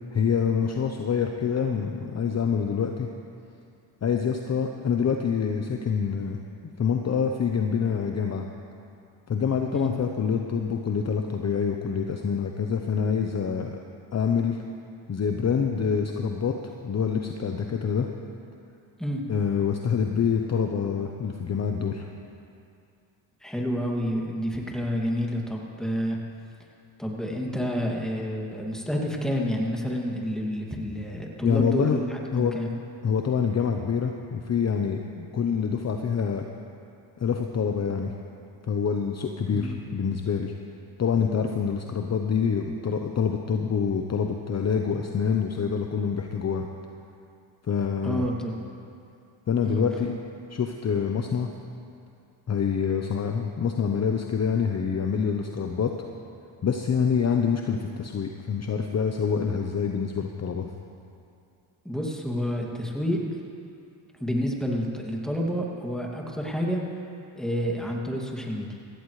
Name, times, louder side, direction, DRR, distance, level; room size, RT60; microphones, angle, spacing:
voice 1, 0.1-3.1 4.0-6.4 6.8-8.5 9.3-13.8 14.1-14.6 15.1-16.5 16.8-18.1 19.3-22.0 31.4-32.0 32.3-32.5 33.0-36.4 37.2-38.1 38.7-40.5 41.0-46.7 47.7-48.3 49.5-50.2 50.5-51.5 52.5-55.9 56.6-60.7, left 6 dB, 35° left, 3 dB, 0.9 m, -26 dB
voice 2, 23.4-26.2 27.0-32.7 39.5-39.7 48.0-48.6 49.6-49.8 61.8-63.2 64.2-66.8 67.4-68.7, equal, ahead, -1 dB, 2.4 m, -29 dB
16.0 x 16.0 x 3.3 m, 2.5 s
supercardioid pair, 75°, 46 cm